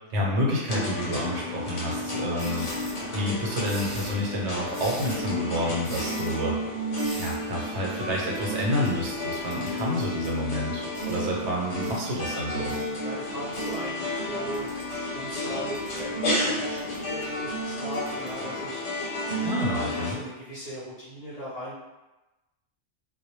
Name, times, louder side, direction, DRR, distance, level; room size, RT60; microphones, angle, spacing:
voice 1, 0.1-6.6 7.1-12.7 19.4-20.2, equal, 70° right, -2 dB, 0.9 m, -29 dB
sound 1, 0.7-20.1, left 1 dB, 80° left, 1.0 m, -32 dB
sound 2, 2.4-3.0 3.7-4.2 4.7-5.3 5.8-6.3 7.0-7.4 8.3-10.4 10.9-11.2 11.8-12.0 12.7-12.8 13.5-13.8 14.5-15.0 15.5-16.1 16.8-17.2 17.9-18.3, equal, 20° right, 0.6 m, -42 dB
voice 2, 12.5-14.7 15.1-18.8 19.6-21.8, equal, 40° left, -10 dB, 0.7 m, -38 dB
2.1 x 2.0 x 3.0 m, 1.0 s
omnidirectional pair, 1.2 m